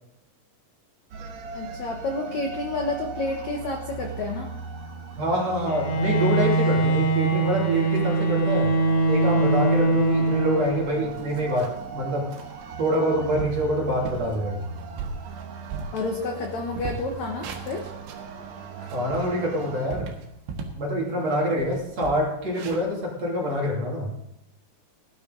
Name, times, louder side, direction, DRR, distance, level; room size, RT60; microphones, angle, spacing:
sound 1, 1.1-19.9, right 5 dB, 65° right, 1.7 m, -39 dB
voice 1, 1.5-4.5 15.9-17.9, left 3 dB, 70° left, 2 dB, 1.7 m, -30 dB
voice 2, 5.2-8.7 9.1-12.3 12.8-14.6 18.9-20.1 20.8-24.1, equal, 40° right, -3 dB, 3.5 m, -26 dB
Bowed string instrument, 5.7-11.0, right 2 dB, 55° left, 2.5 m, -22 dB
sound 2, 11.1-11.9 12.3-12.5 13.0-13.1 13.4-13.7 14.1-14.3 14.8-16.5 16.7-18.3 18.7-20.9 21.2-21.3 21.6-23.7, right 5 dB, 90° right, 4.0 m, -37 dB
18.5 x 12.0 x 3.9 m, 0.84 s
omnidirectional pair, 5.1 m